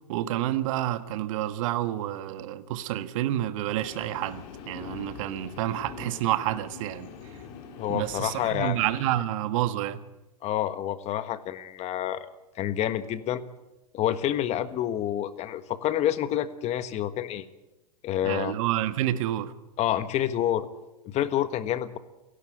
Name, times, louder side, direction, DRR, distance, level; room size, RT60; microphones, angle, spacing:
voice 1, 0.1-7.1 7.9-10.0 18.2-19.5, right 13 dB, 55° right, 1.5 m, -29 dB
Train, 3.8-9.0, left 7 dB, 50° left, 3.6 m, -43 dB
voice 2, 7.8-8.8 10.4-12.3 12.6-13.4 13.9-17.5 18.0-18.5 19.8-20.7 21.1-22.0, left 11 dB, 35° left, 1.4 m, -28 dB
30.0 x 12.0 x 8.9 m
hypercardioid pair, 115°, 20 cm